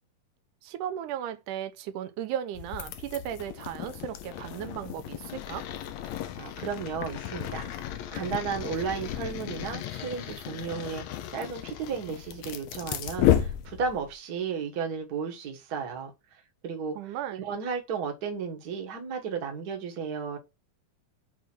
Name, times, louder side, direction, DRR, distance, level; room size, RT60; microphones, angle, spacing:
voice 1, 0.6-5.7 17.0-17.4, right 10 dB, 85° right, 2.2 m, -36 dB
sound 1, 2.5-14.1, left 11 dB, 70° left, 1.8 m, -33 dB
voice 2, 6.4-11.0 11.3-16.1 16.6-16.9 17.4-20.4, right 6 dB, 40° right, 1.5 m, -34 dB
7.1 x 3.6 x 6.0 m
omnidirectional pair, 3.6 m